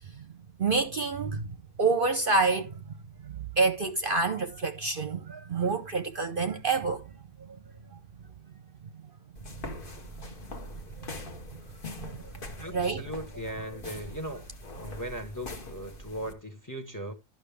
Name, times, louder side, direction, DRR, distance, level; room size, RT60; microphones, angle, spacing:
voice 1, 0.6-1.4 1.8-2.7 3.6-7.0 12.0-12.2 12.7-13.0, right 4 dB, 50° right, 0.8 m, -27 dB
sound 1, 9.4-16.3, left 2 dB, 45° left, 1.3 m, -43 dB
voice 2, 12.6-14.5 14.8-17.1, right 1 dB, 15° left, 0.9 m, -38 dB
12.0 x 6.1 x 3.4 m
omnidirectional pair, 1.4 m